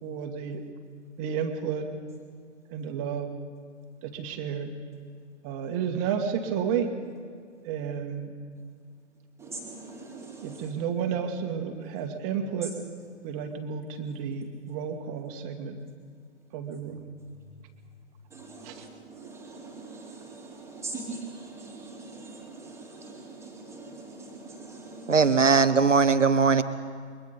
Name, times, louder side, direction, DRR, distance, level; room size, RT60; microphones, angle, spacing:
voice 1, 0.0-0.6 1.2-1.9 2.7-3.3 4.0-4.7 5.4-6.9 7.6-8.3 10.4-12.8 13.2-15.8 16.5-17.1 18.6-18.9, right 7 dB, 25° right, 4 dB, 1.8 m, -31 dB
voice 2, 9.4-10.7 18.3-25.4, right 3 dB, 5° right, -2 dB, 2.7 m, -42 dB
voice 3, 25.1-26.6, right 5 dB, 80° right, 10 dB, 1.2 m, -20 dB
28.5 x 23.0 x 4.1 m, 2.1 s
figure-of-eight pair, 125°, 37 cm